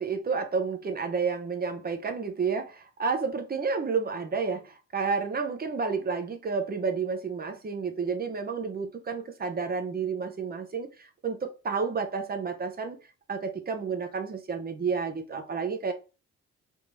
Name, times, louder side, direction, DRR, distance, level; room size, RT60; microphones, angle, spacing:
voice 1, 0.0-13.0 13.3-15.9, right 5 dB, 30° right, 0.8 m, -30 dB
3.6 x 2.7 x 4.7 m
cardioid pair, 90°, 30 cm